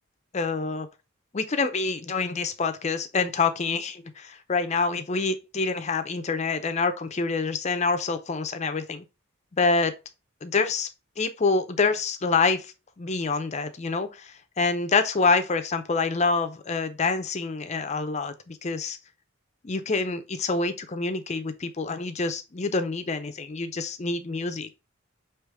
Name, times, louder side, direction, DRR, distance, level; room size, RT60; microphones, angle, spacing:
voice 1, 0.3-0.9 1.3-9.0 9.6-9.9 10.4-10.9 11.2-19.0 19.6-24.7, left 4 dB, 30° left, 0.5 m, -26 dB
4.8 x 3.0 x 3.3 m
head